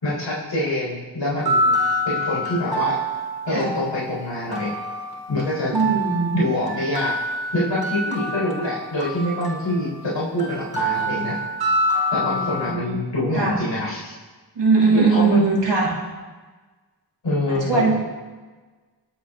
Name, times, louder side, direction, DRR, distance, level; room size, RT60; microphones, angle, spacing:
voice 1, 0.0-1.8 2.1-3.0 3.4-4.7 5.3-5.9 6.3-7.1 7.5-11.4 12.1-14.1 14.9-15.5 17.2-17.9, left 1 dB, 85° left, -6 dB, 4.2 m, -25 dB
sound 1, 1.4-12.7, equal, 60° right, 3.3 m, -26 dB
voice 2, 5.7-6.3 12.2-13.6 14.5-15.9 17.5-17.9, right 4 dB, 85° right, -4 dB, 3.1 m, -21 dB
24.0 x 8.7 x 3.7 m, 1.3 s
cardioid pair, 45°, 42 cm